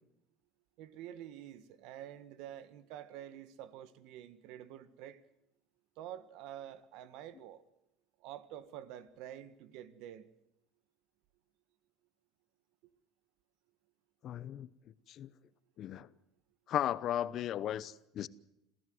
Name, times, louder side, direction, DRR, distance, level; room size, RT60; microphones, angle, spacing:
voice 1, 0.8-5.2 6.0-7.6 8.2-10.3, right 11 dB, 70° right, 1.6 m, -48 dB
voice 2, 14.2-14.7 15.1-15.3 15.8-16.1 16.7-18.3, left 11 dB, 50° left, 0.9 m, -35 dB
27.0 x 15.5 x 8.0 m
supercardioid pair, 115°, 0 cm